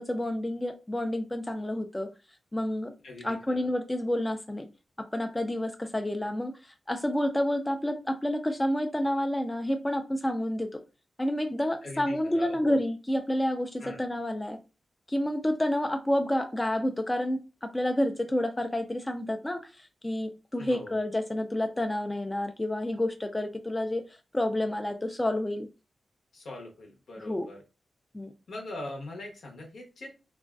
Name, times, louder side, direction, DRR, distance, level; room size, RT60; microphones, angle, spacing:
voice 1, 0.0-2.1 2.5-2.9 3.2-4.7 5.0-6.5 6.9-10.8 11.2-14.6 15.1-24.0 24.3-25.7 27.2-27.5 28.1-28.3, left 1 dB, 20° left, 0.4 m, -29 dB
voice 2, 3.0-3.7 11.8-12.8 13.8-14.0 20.6-21.0 26.3-27.6 28.5-30.2, left 1 dB, 75° left, 0.8 m, -41 dB
2.4 x 2.2 x 2.3 m
cardioid pair, 50°, 0 cm